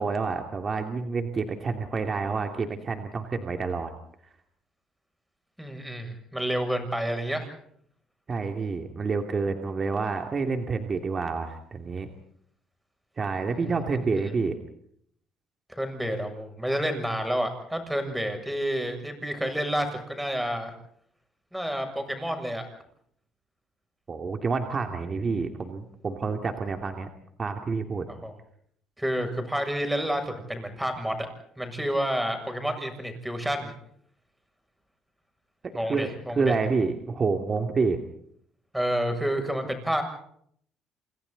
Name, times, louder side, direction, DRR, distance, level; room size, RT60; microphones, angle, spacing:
voice 1, 0.0-3.9 8.3-12.1 13.2-14.5 24.1-27.1 27.4-28.1 35.6-36.1 36.3-38.0, right 4 dB, 35° right, 5 dB, 2.8 m, -28 dB
voice 2, 5.6-7.5 13.5-14.1 15.7-20.7 21.5-22.7 28.1-28.3 29.0-31.3 31.6-33.7 35.7-36.5 38.7-40.0, equal, 5° right, 6 dB, 7.3 m, -29 dB
28.5 x 28.0 x 4.2 m, 0.66 s
cardioid pair, 105°, 0 cm